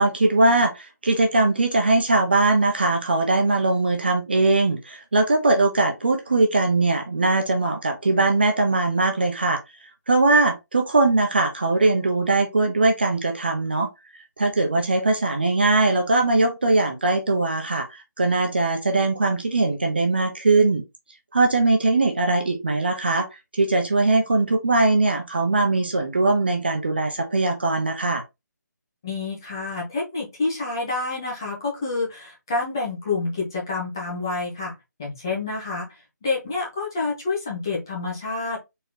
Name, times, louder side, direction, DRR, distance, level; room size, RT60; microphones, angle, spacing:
voice 1, 0.0-9.6 10.1-13.9 14.4-20.8 21.3-23.3 23.5-28.2, right 2 dB, 35° right, 0.7 m, -21 dB
voice 2, 29.0-34.7 35.0-35.9 36.2-38.6, left 3 dB, 15° left, 0.9 m, -28 dB
4.1 x 3.0 x 3.7 m
hypercardioid pair, 180°, 10 cm